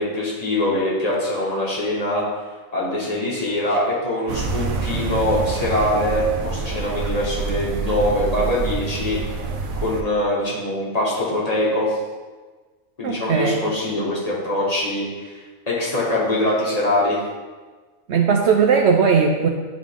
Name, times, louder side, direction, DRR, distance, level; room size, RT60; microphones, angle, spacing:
voice 1, 0.0-2.2 2.7-9.2 9.8-12.0 13.0-15.4 15.7-17.2, left 1 dB, 30° left, -7 dB, 1.9 m, -23 dB
sound 1, 4.3-10.0, right 4 dB, 80° right, 1.1 m, -27 dB
voice 2, 13.0-13.6 18.1-19.5, right 5 dB, 65° right, 2 dB, 0.8 m, -18 dB
10.5 x 3.7 x 3.6 m, 1.3 s
omnidirectional pair, 1.4 m